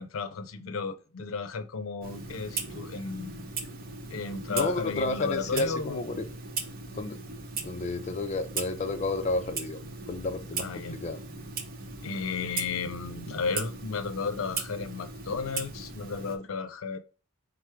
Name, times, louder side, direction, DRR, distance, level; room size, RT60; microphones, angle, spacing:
voice 1, 0.0-3.6 4.1-6.0 10.6-11.0 12.0-17.0, left 5 dB, 85° left, 0.5 m, -34 dB
Clock, 2.0-16.4, right 4 dB, 45° right, 0.7 m, -38 dB
voice 2, 4.5-6.3 6.9-7.2 7.6-9.8 10.1-11.2, left 2 dB, 35° left, 0.4 m, -31 dB
4.7 x 2.0 x 4.4 m
head